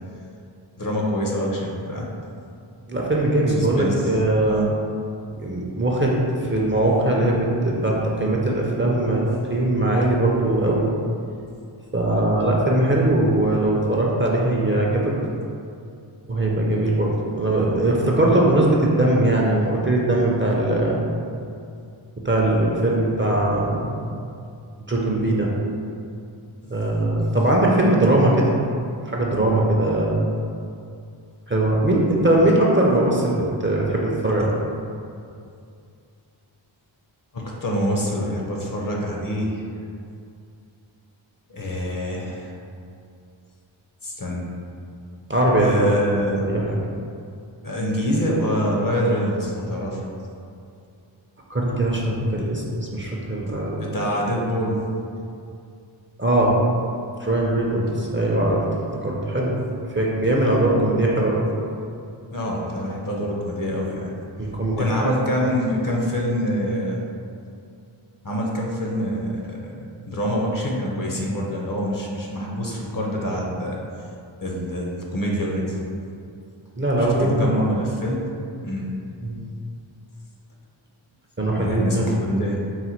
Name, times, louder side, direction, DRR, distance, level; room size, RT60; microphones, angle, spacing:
voice 1, 0.8-2.1 3.5-4.1 4.5-4.7 37.3-39.6 41.5-42.5 44.0-44.5 45.6-46.5 47.6-50.0 53.8-54.8 62.3-64.1 64.7-67.0 68.2-73.8 74.4-75.8 77.2-78.3 78.6-78.9 81.6-82.6, equal, 45° left, -2 dB, 0.7 m, -25 dB
voice 2, 2.9-4.7 5.4-9.2 9.5-10.9 11.9-15.1 16.3-21.0 22.2-24.0 24.9-25.5 26.7-28.5 29.1-30.3 31.5-34.5 45.3-45.8 46.0-46.8 51.5-53.9 56.2-56.5 57.2-58.6 59.0-59.6 59.9-61.5 64.4-65.1 76.8-77.7 79.2-79.4 81.4-82.1, right 1 dB, 25° right, -3 dB, 0.5 m, -20 dB
4.1 x 2.1 x 4.4 m, 2.5 s
wide cardioid pair, 45°, 48 cm